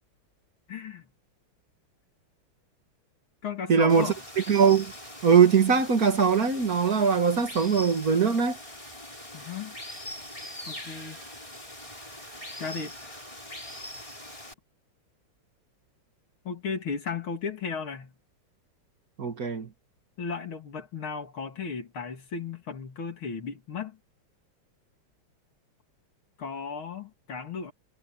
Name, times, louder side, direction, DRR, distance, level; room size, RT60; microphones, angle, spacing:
voice 1, 0.7-1.1 3.4-4.2 9.3-9.7 10.7-11.2 12.6-13.1 16.4-18.1 20.2-24.0 26.4-27.7, left 5 dB, 70° left, 3.3 m, -35 dB
voice 2, 3.7-4.9 5.2-8.6 19.2-19.7, right 6 dB, 45° right, 2.1 m, -21 dB
Water, 3.9-14.5, left 1 dB, 15° left, 6.1 m, -42 dB
omnidirectional pair, 2.4 m